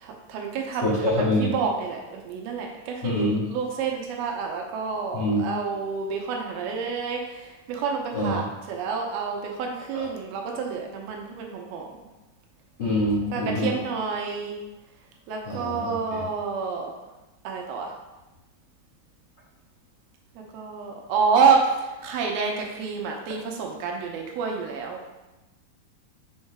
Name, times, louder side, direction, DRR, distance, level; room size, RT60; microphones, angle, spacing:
voice 1, 0.0-8.4 8.7-11.9 13.3-14.6 15.3-16.9 17.4-17.9 20.5-25.0, right 5 dB, 85° right, 1 dB, 2.5 m, -28 dB
voice 2, 0.8-1.5 3.0-3.4 5.1-5.4 8.1-8.4 9.9-10.0 12.8-13.7 15.4-16.2, left 1 dB, 70° left, -10 dB, 1.1 m, -25 dB
6.3 x 4.7 x 3.4 m, 1.0 s
omnidirectional pair, 4.6 m